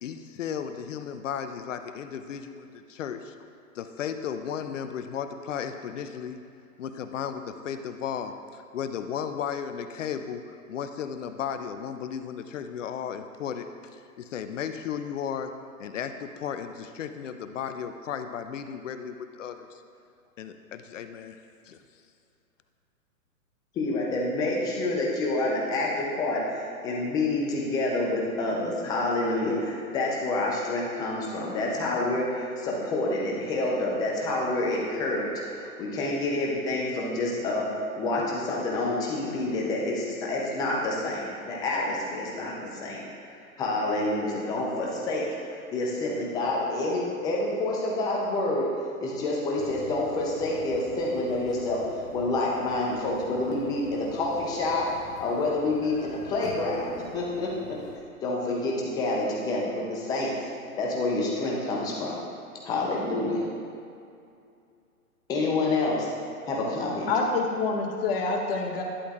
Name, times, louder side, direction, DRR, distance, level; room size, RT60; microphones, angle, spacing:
voice 1, 0.0-3.3 3.7-6.4 6.8-15.5 15.8-19.8 20.4-21.8, left 8 dB, 55° left, 8 dB, 0.6 m, -35 dB
voice 2, 23.7-43.1 43.3-48.7 49.0-51.8 52.1-54.9 55.2-56.9 57.1-57.8 58.2-60.3 60.8-62.2 62.6-63.5 65.3-66.1 66.5-67.1, left 2 dB, 10° left, -3 dB, 0.6 m, -28 dB
sound 1, 49.5-58.0, left 3 dB, 85° left, 1.4 m, -45 dB
voice 3, 67.1-68.8, left 4 dB, 40° left, 1 dB, 1.2 m, -26 dB
11.5 x 8.3 x 2.5 m, 2.4 s
hypercardioid pair, 145°, 45 cm